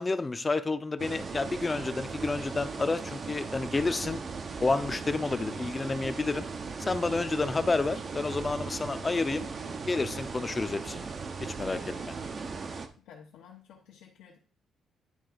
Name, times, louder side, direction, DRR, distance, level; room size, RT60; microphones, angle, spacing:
voice 1, 0.0-4.2 4.6-6.5 6.8-9.5 9.9-11.1 11.4-12.1, left 3 dB, 25° left, 11 dB, 0.7 m, -30 dB
sound 1, 1.0-12.9, right 4 dB, 45° right, 0.8 m, -38 dB
voice 2, 11.8-12.1 13.0-14.4, left 7 dB, 85° left, -3 dB, 1.2 m, -53 dB
9.8 x 3.5 x 5.1 m, 0.39 s
cardioid pair, 90°, 0 cm